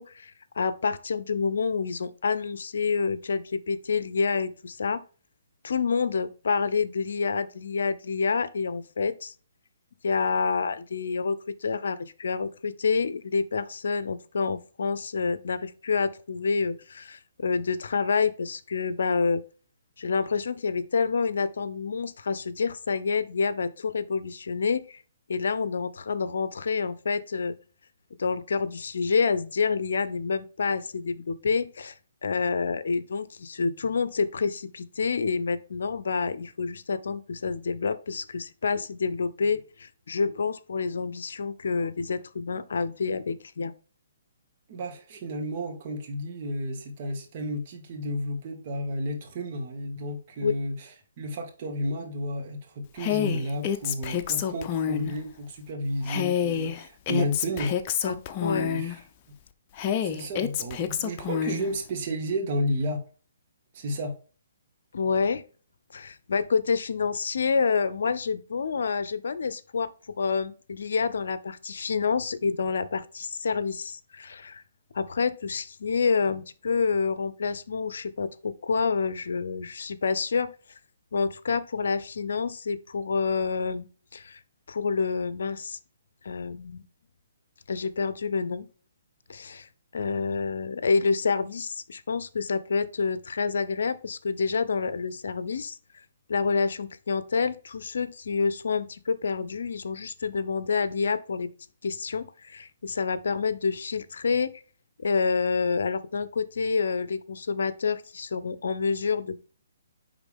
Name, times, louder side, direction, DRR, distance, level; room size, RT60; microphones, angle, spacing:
voice 1, 0.0-5.0 5.6-9.3 10.0-19.4 20.0-25.0 25.3-27.6 28.2-31.9 32.2-43.7 50.4-50.5 58.0-58.7 64.9-65.4 65.9-74.6 74.9-80.5 81.1-83.9 84.1-84.4 84.7-85.8 86.2-86.8 87.7-88.7 89.3-95.8 96.3-101.5 101.8-104.5 105.0-109.4, left 5 dB, 70° left, 0.6 m, -28 dB
voice 2, 44.7-50.9 51.2-57.8 58.4-59.0 60.0-63.0 63.7-64.1, equal, 45° right, 2.1 m, -32 dB
Female speech woman speaking, 53.0-55.1 56.1-59.0 59.8-61.7, left 9 dB, 30° left, 0.7 m, -28 dB
9.7 x 3.7 x 3.6 m
hypercardioid pair, 140°, 0 cm